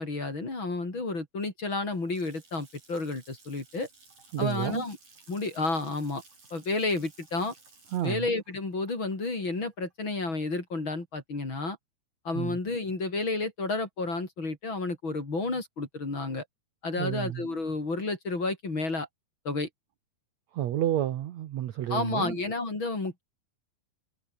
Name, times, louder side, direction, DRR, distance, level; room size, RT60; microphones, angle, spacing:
voice 1, 0.0-3.9 4.4-5.0 5.3-6.2 6.5-7.5 8.0-11.8 12.3-16.4 16.8-19.1 19.5-19.7 21.9-23.2, left 3 dB, 30° left, 5.4 m, -31 dB
Water tap faucet / Sink (filling or washing) / Splash splatter, 1.9-10.5, right 4 dB, 50° right, 9.4 m, -57 dB
voice 2, 4.3-4.8 7.9-8.3 12.3-12.6 17.0-17.4 20.5-22.4, right 12 dB, 70° right, 1.7 m, -30 dB
omnidirectional pair, 4.6 m